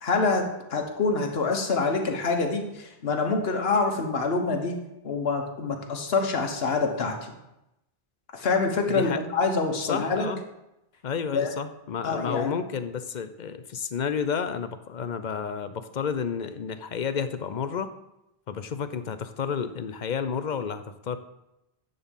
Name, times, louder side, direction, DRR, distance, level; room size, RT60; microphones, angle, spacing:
voice 1, 0.0-0.4 0.7-4.8 5.0-7.2 8.3-10.3 11.3-11.5 12.0-12.5, left 4 dB, 75° left, 3 dB, 1.4 m, -26 dB
voice 2, 8.9-9.2 9.8-10.4 11.0-17.9 18.5-21.2, left 6 dB, 55° left, 11 dB, 0.7 m, -31 dB
11.0 x 4.0 x 7.2 m, 0.89 s
omnidirectional pair, 1.0 m